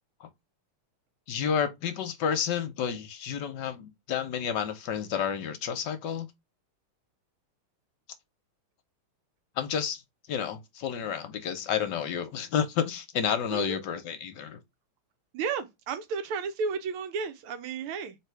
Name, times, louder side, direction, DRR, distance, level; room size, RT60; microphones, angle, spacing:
voice 1, 1.3-6.3 9.6-10.0 10.3-14.6, left 8 dB, 65° left, 1.1 m, -30 dB
voice 2, 13.5-13.8 15.3-18.2, right 5 dB, 85° right, 1.5 m, -33 dB
3.4 x 3.3 x 4.5 m
omnidirectional pair, 2.4 m